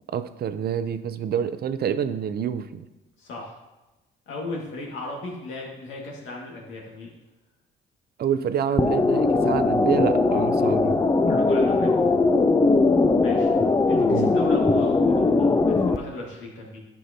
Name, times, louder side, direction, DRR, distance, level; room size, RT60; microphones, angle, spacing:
voice 1, 0.1-2.8 8.2-11.0 14.1-14.4, right 8 dB, 55° right, 12 dB, 0.5 m, -27 dB
voice 2, 3.2-3.5 4.3-7.1 11.2-12.0 13.2-16.8, left 2 dB, 80° left, -1 dB, 1.8 m, -36 dB
sound 1, 8.8-16.0, left 3 dB, 15° left, 0.4 m, -20 dB
11.0 x 5.6 x 2.7 m, 1.1 s
cardioid pair, 90°, 20 cm